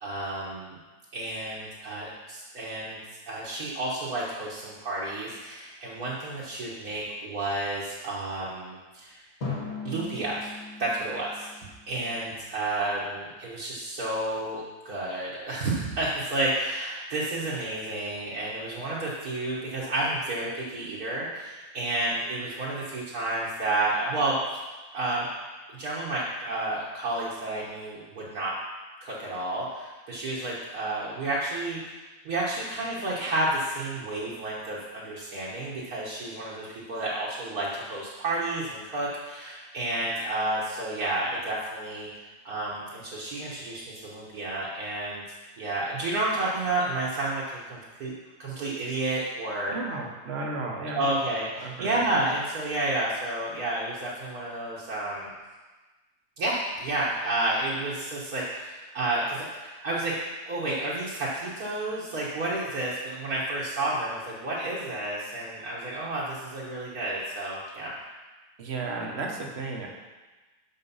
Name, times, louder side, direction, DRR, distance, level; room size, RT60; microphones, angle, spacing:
voice 1, 0.0-0.8 1.1-3.0 3.3-9.2 9.8-10.5 10.8-11.5 11.9-24.6 24.9-25.3 25.7-28.6 29.0-31.8 32.3-42.1 42.5-45.2 45.6-48.1 48.4-49.8 50.9-55.3 56.4-60.2 60.5-67.9, right 2 dB, 60° right, -7 dB, 1.6 m, -31 dB
Drum, 9.4-12.3, left 4 dB, 40° left, 1.9 m, -38 dB
voice 2, 49.7-51.1 51.6-52.0 68.6-69.9, right 3 dB, 45° right, 0 dB, 1.2 m, -34 dB
6.3 x 5.9 x 5.5 m, 1.2 s
omnidirectional pair, 1.8 m